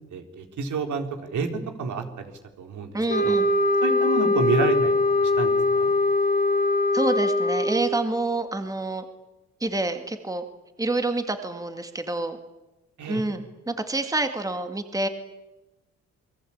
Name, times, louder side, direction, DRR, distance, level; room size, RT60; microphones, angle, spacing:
voice 1, 0.1-1.5 1.8-2.3 2.6-2.9 3.2-3.4 3.8-5.9 13.0-13.2, right 5 dB, 75° right, 5 dB, 4.0 m, -29 dB
voice 2, 2.9-3.5 6.9-9.0 9.6-10.4 10.8-12.4 13.1-15.1, right 2 dB, 10° right, 7 dB, 2.0 m, -27 dB
sound 1, 3.1-8.0, left 2 dB, 30° left, 2.2 m, -22 dB
28.5 x 22.0 x 8.8 m, 1.0 s
cardioid pair, 135°, 30 cm